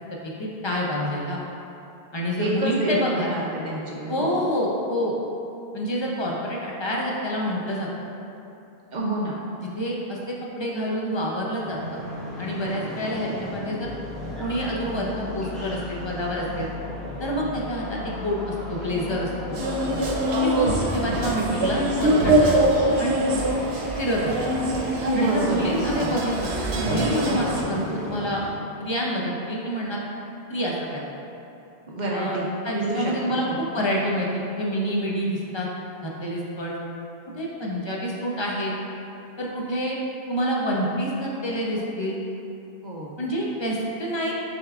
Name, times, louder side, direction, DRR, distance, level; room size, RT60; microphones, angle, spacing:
voice 1, 0.2-1.4 2.1-3.3 4.1-5.1 5.7-7.9 9.8-12.0 12.4-13.9 14.4-16.7 17.2-19.6 20.4-22.5 22.8-23.2 24.0-24.3 25.2-28.4 28.8-30.0 30.5-31.0 32.1-32.4 32.6-34.3 34.6-35.7 36.0-36.7 37.4-38.7 39.4-40.0 40.3-42.2 43.2-44.3, equal, 40° left, -3 dB, 0.4 m, -27 dB
voice 2, 2.4-4.4 8.9-9.4 19.5-20.0 25.1-26.2 27.2-27.4 31.9-32.5 32.7-33.6 42.8-43.2, right 1 dB, 55° right, -3 dB, 0.6 m, -29 dB
sound 1, 11.6-28.5, equal, ahead, 0.7 m, -37 dB
sound 2, 13.8-22.8, left 7 dB, 60° left, 1.1 m, -41 dB
sound 3, 19.5-27.6, right 1 dB, 90° right, 0.9 m, -23 dB
6.3 x 3.5 x 2.3 m, 2.8 s
omnidirectional pair, 1.1 m